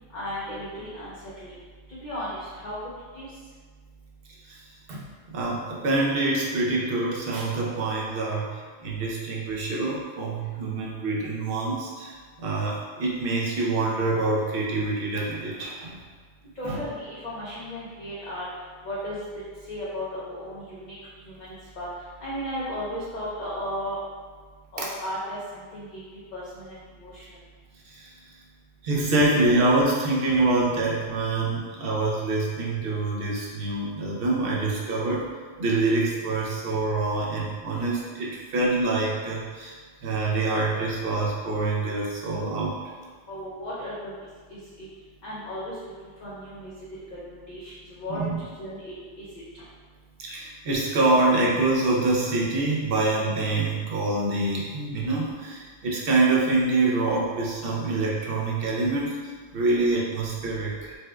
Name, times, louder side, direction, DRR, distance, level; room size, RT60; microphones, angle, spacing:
voice 1, 0.1-1.1 1.4-1.5 1.9-2.8 3.1-3.3 16.6-18.4 18.8-19.2 19.7-21.0 21.3-21.9 22.2-24.0 24.7-26.0 26.3-27.2 43.3-44.1 44.5-44.9 45.2-45.9 46.2-46.7 47.2-49.2 49.5-49.6, equal, 50° left, -9 dB, 0.6 m, -35 dB
voice 2, 5.3-16.0 16.6-16.8 24.8-24.9 27.9-28.1 28.8-35.2 35.6-39.8 40.0-42.8 48.1-48.4 50.2-59.2 59.5-61.0, right 2 dB, 60° right, -4 dB, 0.7 m, -25 dB
4.2 x 2.2 x 2.3 m, 1.5 s
omnidirectional pair, 1.3 m